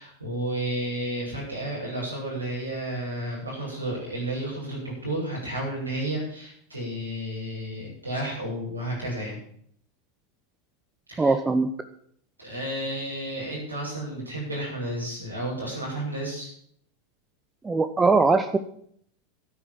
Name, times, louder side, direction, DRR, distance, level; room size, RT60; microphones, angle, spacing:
voice 1, 0.0-9.4 11.1-11.3 12.4-16.5, right 1 dB, 90° right, -6 dB, 7.4 m, -32 dB
voice 2, 11.2-11.7 17.6-18.6, right 3 dB, 15° right, 9 dB, 1.0 m, -21 dB
13.0 x 9.4 x 7.6 m, 0.64 s
figure-of-eight pair, 85°, 0 cm